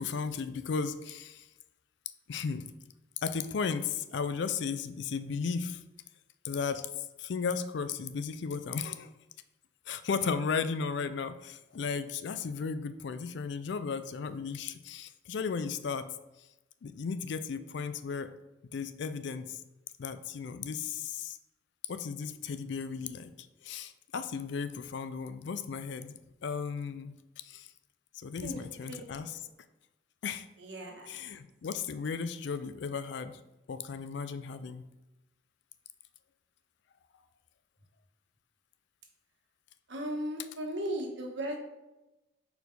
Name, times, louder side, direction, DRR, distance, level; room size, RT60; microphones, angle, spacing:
voice 1, 0.0-1.5 2.3-2.7 3.2-5.8 6.4-6.9 7.2-9.1 9.9-16.1 16.8-18.3 18.7-19.6 20.0-21.4 21.9-27.7 28.1-29.4 30.2-30.5 31.1-33.4 33.7-34.9, left 5 dB, 60° left, 12 dB, 0.4 m, -35 dB
voice 2, 30.6-31.2 39.9-41.6, equal, 65° right, 1 dB, 1.3 m, -36 dB
4.6 x 4.4 x 5.2 m, 1.0 s
head